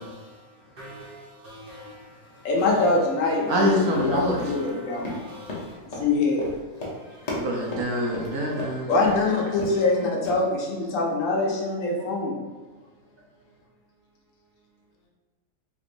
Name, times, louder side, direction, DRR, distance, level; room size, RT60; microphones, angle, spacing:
voice 1, 0.8-1.9 4.4-4.7 5.1-5.6, right 1 dB, 45° right, -6 dB, 0.9 m, -43 dB
voice 2, 2.4-5.2 5.9-6.4 8.9-12.4, left 3 dB, 65° left, -2 dB, 0.9 m, -24 dB
voice 3, 3.5-4.4 7.3-9.1, equal, 80° right, -2 dB, 1.2 m, -25 dB
Run, 4.9-8.7 9.0-9.2 9.5-9.9 10.2-10.3, left 2 dB, 35° left, 0.6 m, -34 dB
3.6 x 3.2 x 2.5 m, 1.3 s
omnidirectional pair, 1.6 m